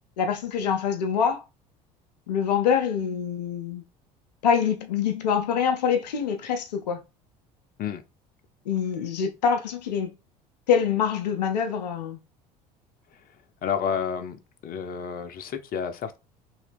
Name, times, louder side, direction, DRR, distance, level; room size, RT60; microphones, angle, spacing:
voice 1, 0.2-1.4 2.3-3.8 4.4-7.0 8.7-10.1 10.7-12.2, left 7 dB, 80° left, 0.5 m, -25 dB
voice 2, 13.6-14.4 14.6-16.2, left 7 dB, 45° left, 0.7 m, -30 dB
3.0 x 2.8 x 3.3 m
hypercardioid pair, 65°, 21 cm